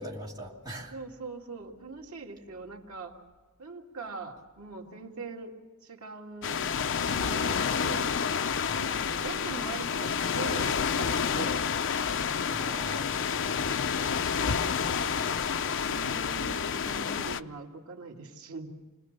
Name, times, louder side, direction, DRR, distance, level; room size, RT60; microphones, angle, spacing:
voice 1, 0.0-0.9 8.7-8.8 12.5-13.6, right 1 dB, 20° right, -2 dB, 2.8 m, -41 dB
voice 2, 0.9-3.1 3.6-5.5 5.8-6.6 6.9-8.2 8.7-11.7 15.8-18.8, right 3 dB, 85° right, 1 dB, 2.4 m, -42 dB
sound 1, 6.4-17.4, left 6 dB, 60° left, 0.6 m, -29 dB
Acoustic guitar / Strum, 7.1-10.8 15.7-15.8, left 1 dB, 80° left, 1.9 m, -46 dB
27.0 x 20.0 x 6.7 m, 1.3 s
head